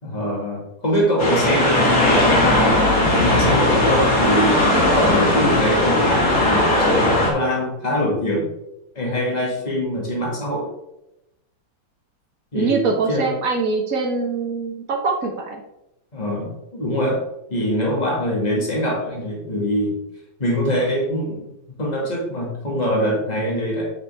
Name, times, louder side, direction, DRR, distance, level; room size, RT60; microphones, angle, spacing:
voice 1, 0.0-2.6 3.0-8.5 8.9-10.7 12.5-13.3 16.1-17.2 17.5-20.0 20.4-23.9, equal, 20° left, -3 dB, 2.4 m, -23 dB
sound 1, 1.2-7.3, left 1 dB, 45° left, 2.5 m, -17 dB
voice 2, 12.5-15.6, right 4 dB, 50° right, 2 dB, 1.6 m, -23 dB
8.8 x 5.9 x 3.6 m, 0.86 s
omnidirectional pair, 2.1 m